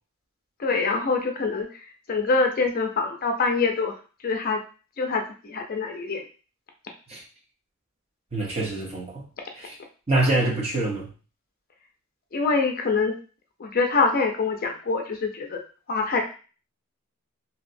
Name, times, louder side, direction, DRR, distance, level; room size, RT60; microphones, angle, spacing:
voice 1, 0.6-1.7 2.1-4.0 4.2-4.6 5.0-6.2 12.3-13.2 13.6-15.6 15.9-16.2, left 4 dB, 40° left, 3 dB, 0.5 m, -24 dB
voice 2, 8.3-9.2 9.5-9.7 10.1-11.1, right 2 dB, 30° right, -3 dB, 0.8 m, -25 dB
2.9 x 2.7 x 2.6 m, 0.36 s
head